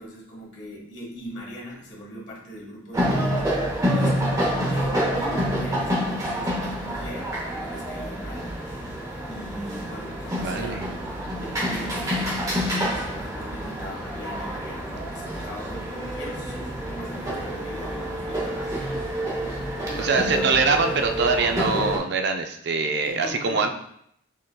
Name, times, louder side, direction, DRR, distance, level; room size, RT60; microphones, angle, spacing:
voice 1, 0.0-3.5 3.9-8.5 9.3-10.9 11.1-19.0 19.9-20.4 22.8-23.7, equal, 55° left, -3 dB, 1.6 m, -40 dB
sound 1, 2.9-22.0, equal, 15° right, 0.8 m, -28 dB
voice 2, 10.4-10.9 20.0-23.7, right 4 dB, 50° right, 5 dB, 0.4 m, -23 dB
6.4 x 3.6 x 2.2 m, 0.71 s
head